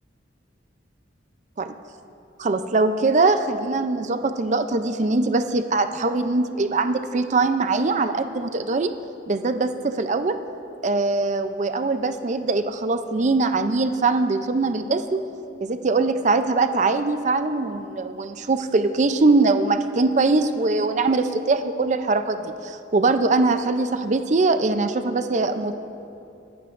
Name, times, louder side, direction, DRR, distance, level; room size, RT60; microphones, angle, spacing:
voice 1, 2.4-8.9 9.3-10.4 10.8-15.2 15.6-25.7, right 3 dB, 40° right, 9 dB, 0.5 m, -22 dB
23.0 x 11.0 x 2.5 m, 2.8 s
head